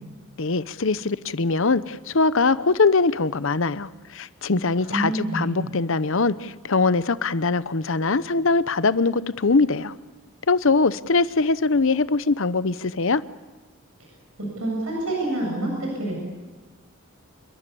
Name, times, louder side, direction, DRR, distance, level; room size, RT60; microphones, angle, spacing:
voice 1, 0.4-9.9 10.5-13.2, left 3 dB, 60° left, 16 dB, 0.8 m, -22 dB
voice 2, 4.9-5.6 14.6-16.2, right 1 dB, 70° right, -1 dB, 7.8 m, -27 dB
27.5 x 22.5 x 7.0 m, 1.3 s
head